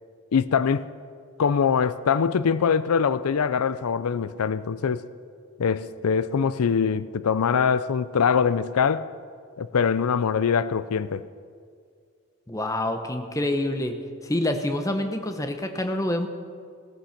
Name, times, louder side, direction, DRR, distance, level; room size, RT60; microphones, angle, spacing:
voice 1, 0.3-0.9 1.4-5.1 5.6-9.1 9.6-11.3, left 6 dB, 85° left, 0.5 m, -23 dB
voice 2, 12.5-13.9 14.2-16.3, left 1 dB, 15° left, 0.9 m, -27 dB
17.5 x 13.0 x 5.9 m
head